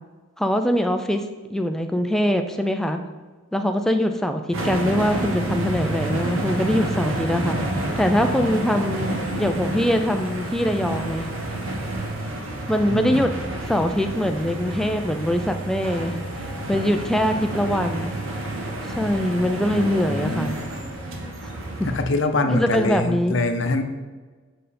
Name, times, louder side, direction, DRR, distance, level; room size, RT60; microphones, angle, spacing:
voice 1, 0.4-3.0 3.5-7.6 8.0-9.1 9.4-11.3 12.7-13.3 13.7-18.1 18.9-20.6 21.8-21.9 22.4-23.4, equal, ahead, 6 dB, 0.4 m, -23 dB
sound 1, 4.5-22.0, right 1 dB, 90° right, 1.2 m, -29 dB
voice 2, 12.9-13.3 19.7-20.6 21.8-23.8, left 2 dB, 70° left, 7 dB, 0.7 m, -24 dB
7.8 x 5.1 x 4.2 m, 1.4 s
head